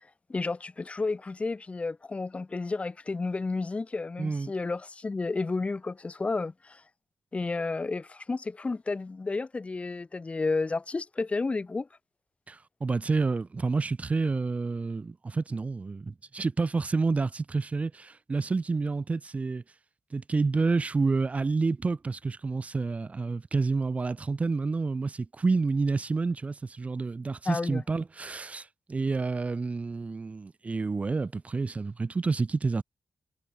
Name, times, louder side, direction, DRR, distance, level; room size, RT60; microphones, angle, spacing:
voice 1, 0.3-6.8 7.3-11.9 27.5-27.8, left 3 dB, 35° left, 4.2 m, -31 dB
voice 2, 4.2-4.5 12.5-19.6 20.1-32.8, right 4 dB, 35° right, 1.9 m, -29 dB
cardioid pair, 90°, 4 cm